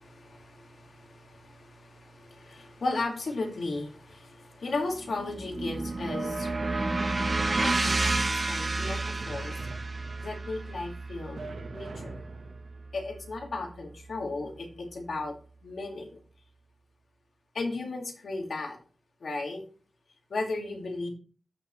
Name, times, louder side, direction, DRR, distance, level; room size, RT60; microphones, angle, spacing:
voice 1, 0.0-9.9 10.2-12.1 12.9-15.3 15.6-16.2 17.5-18.8 19.2-19.6 20.3-21.1, left 3 dB, 75° left, 2 dB, 2.3 m, -36 dB
sound 1, 4.9-13.2, right 2 dB, 35° right, 1.1 m, -31 dB
sound 2, 6.1-8.1 9.2-10.5 11.4-12.7, right 3 dB, 75° right, 1.4 m, -41 dB
14.5 x 5.4 x 3.2 m, 0.39 s
wide cardioid pair, 120°, 0 cm